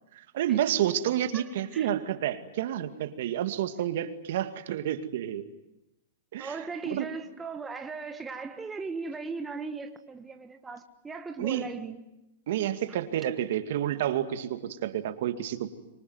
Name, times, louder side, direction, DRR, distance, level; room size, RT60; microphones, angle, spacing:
voice 1, 0.1-5.5 6.3-6.6 6.8-7.1 11.4-11.7 12.5-15.7, right 11 dB, 60° right, 2.2 m, -29 dB
voice 2, 1.3-1.9 6.4-12.0, right 4 dB, 10° right, 1.5 m, -38 dB
25.5 x 24.0 x 9.5 m
hypercardioid pair, 140°, 0 cm